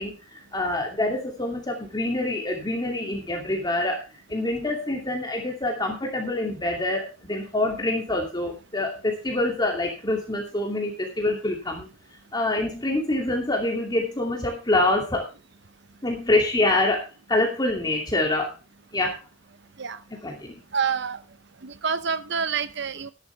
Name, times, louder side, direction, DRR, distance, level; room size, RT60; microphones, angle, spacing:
voice 1, 0.0-4.0 4.3-11.9 12.3-15.3 16.0-18.5 18.9-19.2 20.2-20.6, left 2 dB, 20° left, 0 dB, 2.7 m, -26 dB
voice 2, 20.7-21.2 21.6-23.1, right 6 dB, 60° right, 14 dB, 0.7 m, -27 dB
14.0 x 10.5 x 3.4 m, 0.31 s
head